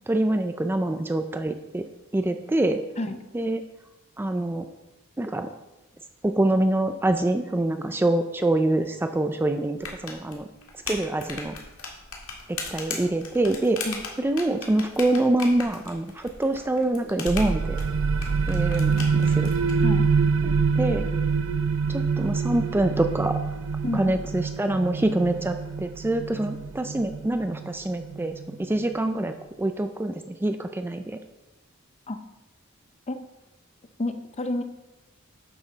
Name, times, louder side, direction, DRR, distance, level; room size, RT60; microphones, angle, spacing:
voice 1, 0.1-1.8 2.1-2.8 3.3-3.6 4.2-4.7 5.2-5.5 6.2-10.5 10.9-11.6 12.5-13.8 14.2-17.8 18.5-19.5 20.4-21.1 21.9-23.4 23.9-29.3 29.6-31.2, right 1 dB, 10° right, 7 dB, 0.4 m, -25 dB
sound 1, 9.8-19.7, left 4 dB, 90° left, 1.8 m, -38 dB
sound 2, 17.3-28.6, right 5 dB, 70° right, 0.5 m, -26 dB
voice 2, 34.0-34.6, left 1 dB, 30° left, 9 dB, 0.6 m, -29 dB
10.5 x 6.1 x 3.9 m, 1.0 s
head